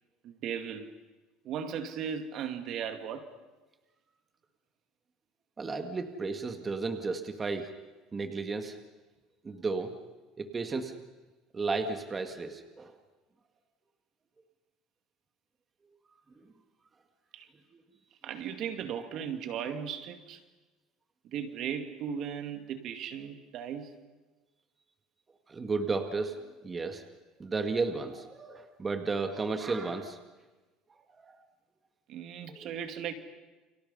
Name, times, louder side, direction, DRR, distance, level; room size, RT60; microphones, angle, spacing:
voice 1, 0.2-0.9 1.4-3.3 17.3-17.5 18.2-20.4 21.3-23.9 32.1-33.1, right 8 dB, 55° right, 8 dB, 2.4 m, -37 dB
voice 2, 5.6-7.7 8.1-8.8 9.4-9.9 10.4-11.0 11.5-13.0 16.4-16.5 25.5-27.0 27.4-30.2 30.9-31.4 32.5-32.7, right 4 dB, 20° right, 6 dB, 1.9 m, -33 dB
30.0 x 28.5 x 5.6 m, 1.2 s
cardioid pair, 130°, 0 cm